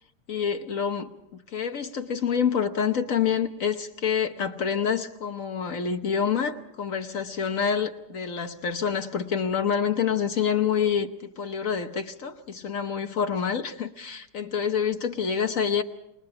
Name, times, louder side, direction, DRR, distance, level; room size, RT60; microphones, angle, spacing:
voice 1, 0.3-1.1 1.5-15.8, left 7 dB, 55° left, 1.0 m, -27 dB
28.5 x 20.5 x 4.8 m
omnidirectional pair, 2.4 m